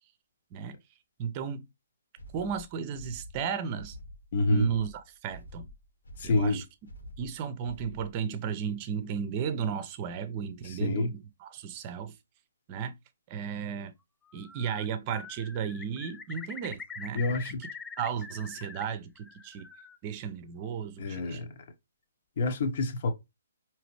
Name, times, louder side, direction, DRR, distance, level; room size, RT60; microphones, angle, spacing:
voice 1, 1.2-1.6 2.3-4.0 4.5-4.9 5.2-5.7 6.2-6.6 7.2-12.1 12.7-12.9 13.3-13.9 14.3-17.7 18.0-19.7 20.0-21.4, right 7 dB, 30° right, 0.7 m, -34 dB
sound 1, 2.2-8.2, equal, 75° left, 1.4 m, -47 dB
voice 2, 4.3-4.7 6.2-6.6 10.6-11.1 17.1-17.6 21.0-21.5 22.4-23.1, left 3 dB, 45° left, 0.9 m, -28 dB
Bird, 14.3-14.9 15.1-18.8 19.2-20.0, left 5 dB, 10° left, 0.3 m, -44 dB
5.0 x 3.0 x 3.1 m
figure-of-eight pair, 130°, 0 cm